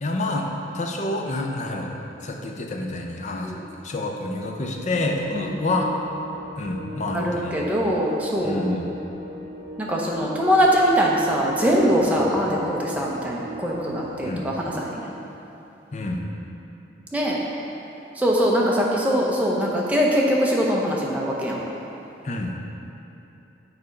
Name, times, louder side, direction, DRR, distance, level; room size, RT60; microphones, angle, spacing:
voice 1, 0.0-0.5 0.7-1.9 2.2-3.5 3.8-5.9 6.6-7.7 8.4-8.9 12.2-12.3 14.2-14.5 15.9-16.2 22.2-22.5, left 2 dB, 40° left, 1 dB, 0.6 m, -28 dB
sound 1, 4.9-14.9, left 1 dB, 40° right, 0.8 m, -39 dB
voice 2, 7.1-8.7 9.8-15.1 17.1-17.4 18.2-21.6, equal, 10° right, -4 dB, 0.7 m, -22 dB
6.8 x 4.2 x 5.2 m, 2.9 s
head